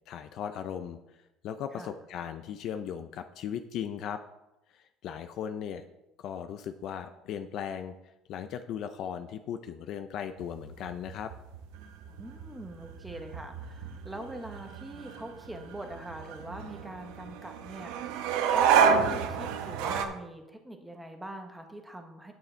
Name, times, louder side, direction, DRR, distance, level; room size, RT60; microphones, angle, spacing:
voice 1, 0.1-1.0 1.4-4.2 4.7-5.9 6.2-7.9 8.3-11.3, left 8 dB, 40° left, 9 dB, 0.5 m, -37 dB
sound 1, 10.4-20.0, right 7 dB, 75° right, 1.0 m, -30 dB
voice 2, 12.2-22.3, right 1 dB, 5° right, 4 dB, 1.0 m, -43 dB
9.4 x 8.4 x 4.4 m, 0.93 s
cardioid pair, 180°, 0 cm